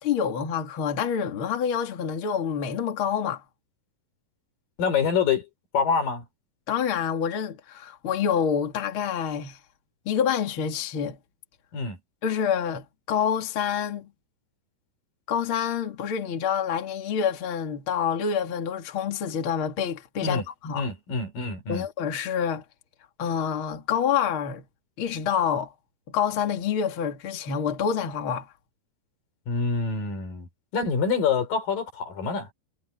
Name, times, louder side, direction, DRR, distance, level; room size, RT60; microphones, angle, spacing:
voice 1, 0.0-3.4 6.7-9.6 10.0-11.2 12.2-14.1 15.3-20.9 21.7-22.6 23.2-24.6 25.0-25.7 26.1-28.5, left 7 dB, 40° left, 2.7 m, -27 dB
voice 2, 4.8-5.5 5.7-6.2 11.7-12.0 20.2-20.4 20.7-21.9 29.5-30.5 30.7-32.5, left 5 dB, 65° left, 5.5 m, -26 dB
omnidirectional pair, 4.3 m